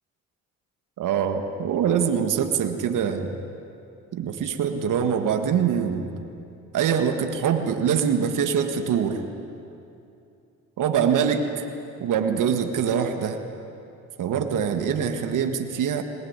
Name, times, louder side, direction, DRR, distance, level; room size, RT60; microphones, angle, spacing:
voice 1, 1.0-3.4 4.1-6.1 6.7-9.2 10.8-11.6 12.0-13.4 14.2-16.0, right 7 dB, 70° right, 6 dB, 1.7 m, -24 dB
20.0 x 20.0 x 9.7 m, 2.7 s
supercardioid pair, 60°, 33 cm